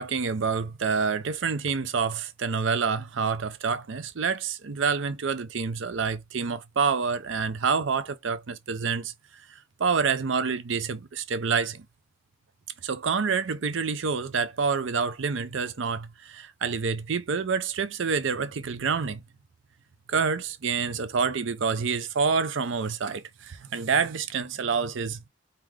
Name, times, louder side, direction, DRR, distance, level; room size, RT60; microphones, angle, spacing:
voice 1, 0.0-9.1 9.8-11.8 12.8-19.2 20.1-25.2, right 5 dB, 65° right, 0.5 m, -27 dB
4.4 x 3.6 x 3.1 m
head